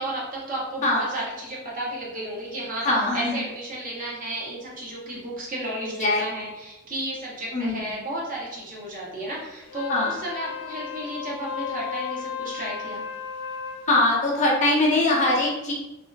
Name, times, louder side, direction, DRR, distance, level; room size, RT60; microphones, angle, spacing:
voice 1, 0.0-2.9 3.1-13.0, right 1 dB, 40° right, -4 dB, 0.7 m, -33 dB
voice 2, 2.8-3.3 6.0-6.2 7.5-7.8 9.9-10.2 13.9-15.7, left 2 dB, 35° left, -4 dB, 0.6 m, -22 dB
Wind instrument woodwind instrument, 9.6-13.9, left 7 dB, 90° left, 0.3 m, -34 dB
2.5 x 2.3 x 2.2 m, 0.94 s
head